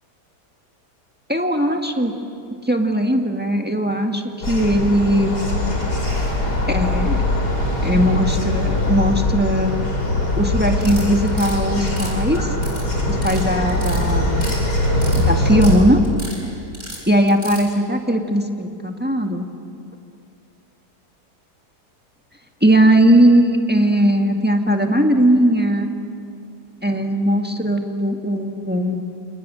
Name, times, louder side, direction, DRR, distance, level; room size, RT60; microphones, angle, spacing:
voice 1, 1.3-2.1 2.6-5.3 6.7-7.2 7.8-9.8 10.4-12.5 13.1-14.4 15.2-16.0 17.1-19.5 22.6-25.9 26.8-29.0, equal, 5° right, 3 dB, 1.7 m, -18 dB
sound 1, 4.4-15.8, left 1 dB, 70° left, 4.6 m, -21 dB
sound 2, 10.8-11.6 11.9-12.8 13.1-13.4 13.7-14.6 14.9-15.8 16.0-16.4 16.7-17.6, right 1 dB, 45° right, 8.1 m, -34 dB
29.5 x 26.5 x 7.6 m, 2.5 s
omnidirectional pair, 1.8 m